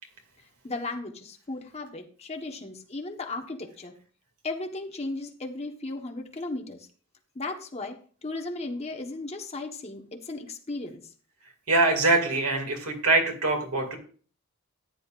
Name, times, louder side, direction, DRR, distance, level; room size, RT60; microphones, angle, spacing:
voice 1, 0.6-3.9 4.4-6.9 7.3-8.0 8.2-11.0, left 2 dB, 30° left, 3 dB, 1.1 m, -35 dB
voice 2, 11.7-14.0, right 2 dB, 85° right, 3 dB, 2.3 m, -23 dB
14.0 x 9.7 x 2.5 m, 0.43 s
head